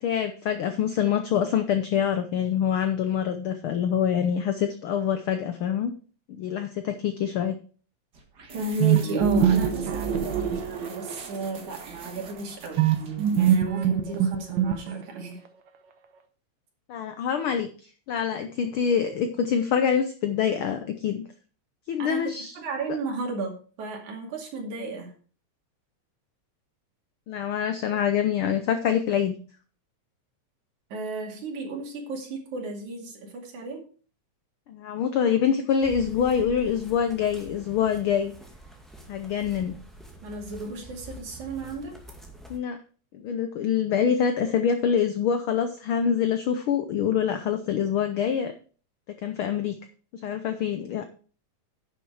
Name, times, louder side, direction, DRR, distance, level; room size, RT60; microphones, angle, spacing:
voice 1, 0.0-5.9 6.3-7.6 16.9-21.2 21.9-22.5 27.3-29.4 34.7-38.3 39.1-39.8 42.5-42.8 43.1-48.5 49.2-49.8 50.2-51.0, left 8 dB, 75° left, 8 dB, 1.2 m, -25 dB
sound 1, 8.1-13.6, right 3 dB, 40° right, 2.0 m, -45 dB
voice 2, 8.5-12.8 13.4-15.4 22.0-25.1 30.9-33.8 40.2-41.9, right 2 dB, 85° right, 1 dB, 3.8 m, -34 dB
sound 2, 8.8-11.4 12.8-15.2, right 8 dB, 70° right, 1.1 m, -23 dB
sound 3, 35.8-42.6, right 1 dB, ahead, 1.5 m, -46 dB
10.5 x 6.9 x 4.7 m, 0.39 s
omnidirectional pair, 3.3 m